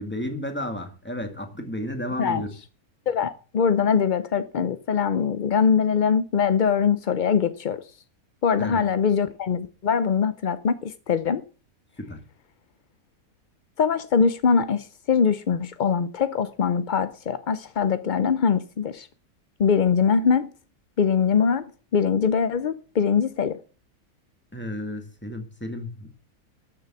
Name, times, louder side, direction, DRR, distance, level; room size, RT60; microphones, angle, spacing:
voice 1, 0.0-2.5 8.6-8.8 12.0-12.2 24.5-26.1, left 1 dB, 5° left, 1.8 m, -32 dB
voice 2, 3.1-7.8 8.4-11.4 13.8-19.1 19.6-20.5 21.0-21.6 21.9-23.6, left 6 dB, 60° left, 0.5 m, -22 dB
12.5 x 6.9 x 7.2 m
omnidirectional pair, 1.6 m